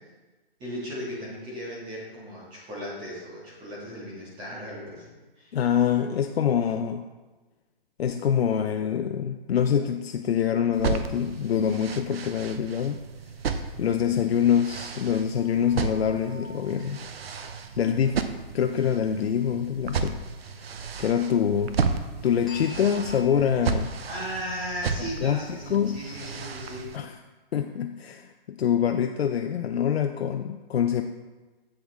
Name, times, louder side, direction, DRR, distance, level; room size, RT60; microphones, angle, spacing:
voice 1, 0.6-5.1 5.4-5.6 24.1-27.0, equal, 15° right, -7 dB, 2.0 m, -36 dB
voice 2, 5.5-7.1 8.0-13.0 13.8-17.0 17.8-18.2 18.5-20.2 20.6-20.7 21.0-21.8 22.2-23.9 25.2-25.4 25.7-26.0 26.9-27.1 27.5-31.0, left 8 dB, 80° left, 6 dB, 0.5 m, -25 dB
sound 1, 10.7-27.0, right 5 dB, 75° right, 0.7 m, -33 dB
sound 2, 15.3-18.2 22.5-26.0, left 2 dB, ahead, 1.3 m, -48 dB
7.9 x 6.9 x 3.6 m, 1.2 s
hypercardioid pair, 160°, 30 cm